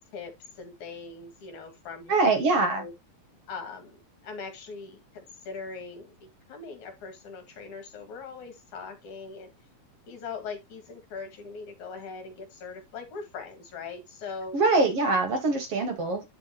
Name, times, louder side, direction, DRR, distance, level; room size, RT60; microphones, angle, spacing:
voice 1, 0.1-2.1 2.8-2.9 3.5-9.5 10.1-14.6, left 4 dB, 60° left, 3.1 m, -41 dB
voice 2, 2.1-2.8 14.5-16.2, right 3 dB, 55° right, 1.8 m, -23 dB
10.5 x 4.9 x 2.8 m
omnidirectional pair, 4.1 m